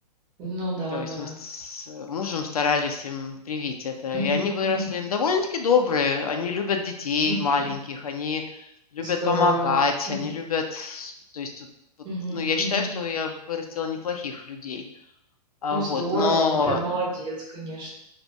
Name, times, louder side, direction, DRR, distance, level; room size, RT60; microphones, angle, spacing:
voice 1, 0.4-1.4 4.1-4.9 7.2-7.7 9.0-9.8 10.1-10.3 12.0-12.9 15.7-18.0, right 1 dB, 20° right, -4 dB, 0.9 m, -30 dB
voice 2, 0.9-8.4 8.9-11.7 12.3-14.8 15.6-16.8, left 5 dB, 60° left, 4 dB, 0.4 m, -26 dB
2.7 x 2.4 x 3.3 m, 0.78 s
figure-of-eight pair, 110°, 21 cm